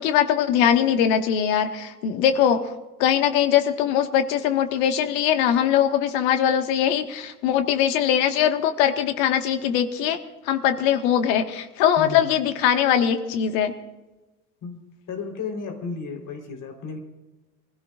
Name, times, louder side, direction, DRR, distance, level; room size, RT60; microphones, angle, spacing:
voice 1, 0.0-2.7 3.0-10.2 10.5-13.7, left 9 dB, 60° left, 7 dB, 1.8 m, -21 dB
voice 2, 12.0-12.3 14.6-14.8 15.1-17.0, left 5 dB, 45° left, 2 dB, 4.2 m, -33 dB
28.0 x 16.5 x 2.6 m, 1.2 s
figure-of-eight pair, 65°, 45 cm